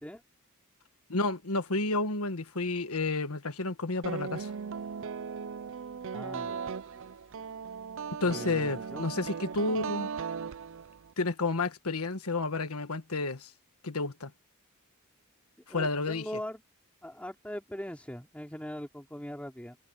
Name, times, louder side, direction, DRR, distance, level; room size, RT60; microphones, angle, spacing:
voice 1, 1.1-4.5 8.2-10.1 11.2-13.5 13.8-14.3 15.7-16.3, left 3 dB, 90° left, 1.5 m, -31 dB
sound 1, 4.0-11.1, right 6 dB, 60° right, 0.5 m, -38 dB
voice 2, 6.1-6.6 8.2-9.0 15.7-16.6 17.0-19.8, equal, 5° left, 3.2 m, -41 dB
head